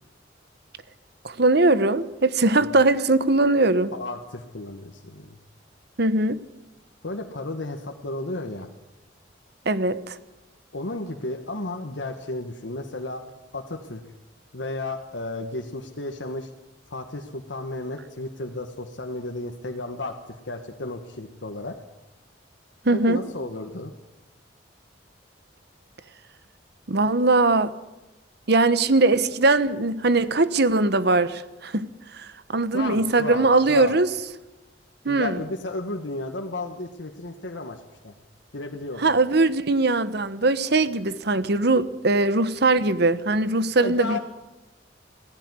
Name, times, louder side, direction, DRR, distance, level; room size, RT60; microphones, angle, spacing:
voice 1, 1.2-3.9 6.0-6.4 9.6-10.2 22.8-23.2 26.9-27.7 28.5-31.9 32.1-34.1 35.0-35.4 39.0-44.2, right 2 dB, 60° right, 14 dB, 1.1 m, -21 dB
voice 2, 3.9-5.4 7.0-8.7 10.7-13.2 13.5-14.0 14.5-16.5 16.9-21.8 22.9-23.9 32.7-34.0 35.1-38.1 38.5-39.1 43.8-44.2, left 2 dB, 80° left, 3 dB, 1.6 m, -33 dB
17.5 x 15.5 x 9.7 m, 1.0 s
head